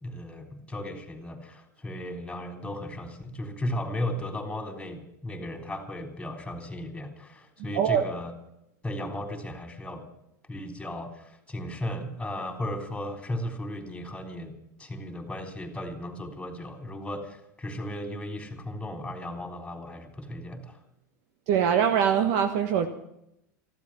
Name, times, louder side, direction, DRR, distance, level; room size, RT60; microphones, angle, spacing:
voice 1, 0.0-8.3 8.8-10.1 10.5-14.5 14.8-20.8, left 1 dB, 10° left, 3.6 m, -35 dB
voice 2, 21.5-22.9, right 8 dB, 60° right, 1.4 m, -23 dB
15.0 x 12.0 x 7.4 m
hypercardioid pair, 90°, 10 cm